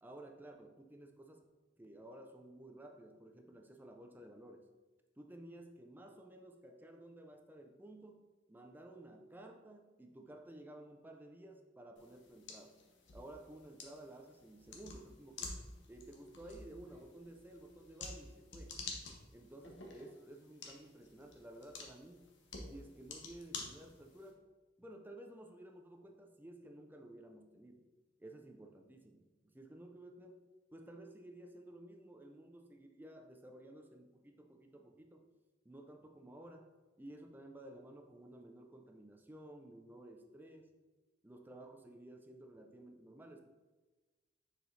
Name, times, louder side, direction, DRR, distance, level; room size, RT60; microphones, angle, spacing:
voice 1, 0.0-1.4 1.8-4.7 5.2-12.8 13.1-15.6 15.9-18.8 19.3-22.3 22.6-24.5 24.8-35.3 35.6-36.7 37.0-40.7 41.2-43.5, right 1 dB, 10° right, 3 dB, 0.5 m, -54 dB
sound 1, 12.0-24.3, left 3 dB, 70° left, 1.0 m, -50 dB
6.4 x 4.8 x 3.2 m, 1.2 s
head